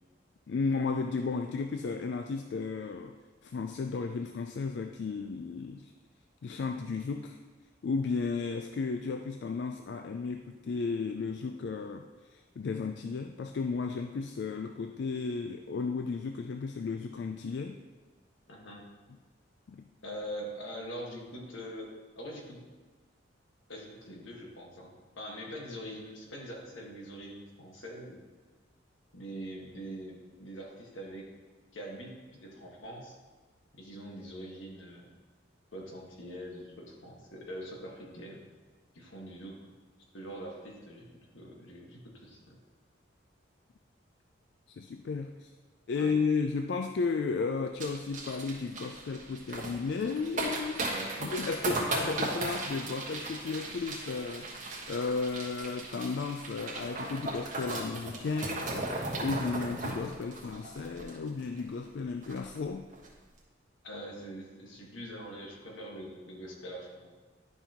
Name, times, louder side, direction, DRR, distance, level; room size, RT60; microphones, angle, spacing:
voice 1, 0.5-3.2 3.4-5.9 6.4-7.4 7.8-17.8 19.7-19.9 44.7-45.5 45.9-58.9 59.2-62.9, left 4 dB, 60° left, 6 dB, 0.3 m, -34 dB
voice 2, 18.5-18.8 20.0-21.9 22.2-22.6 23.7-28.2 29.1-31.3 31.7-33.2 33.7-35.1 35.7-38.4 38.9-39.7 40.1-41.1 41.3-42.6 46.0-46.1 50.9-51.2 63.8-67.1, equal, 85° left, -1 dB, 1.5 m, -43 dB
sound 1, 47.8-61.6 61.9-62.0 62.2-62.6 62.9-63.1, right 2 dB, 40° right, 1.3 m, -37 dB
11.0 x 5.4 x 2.9 m, 1.4 s
head